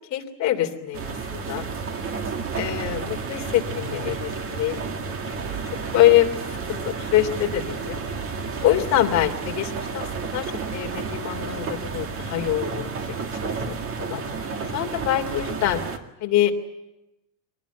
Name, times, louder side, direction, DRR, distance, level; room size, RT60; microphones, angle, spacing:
voice 1, 0.1-1.6 2.5-4.8 5.9-6.3 6.7-8.0 8.6-12.9 13.4-14.2 14.7-15.8 16.2-16.5, left 13 dB, 35° left, 2 dB, 3.2 m, -24 dB
sound 1, 0.9-16.0, right 5 dB, 25° right, 1.9 m, -31 dB
25.0 x 19.5 x 9.3 m, 0.93 s
supercardioid pair, 165°, 50 cm